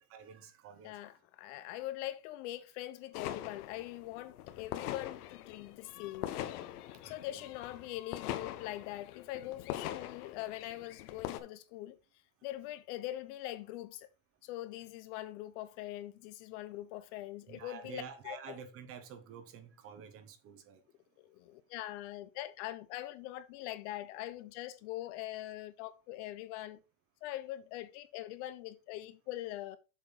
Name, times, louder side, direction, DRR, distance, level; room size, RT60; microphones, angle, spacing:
voice 1, 0.1-0.9 7.0-7.5 17.5-20.8, right 7 dB, 30° right, 1.1 m, -49 dB
voice 2, 0.8-6.4 7.0-12.0 12.4-14.1 14.4-18.6 21.2-26.8 27.2-29.8, left 15 dB, 50° left, 0.6 m, -43 dB
sound 1, 3.1-11.4, left 12 dB, 80° left, 1.1 m, -42 dB
7.2 x 4.2 x 5.5 m
supercardioid pair, 160°, 45 cm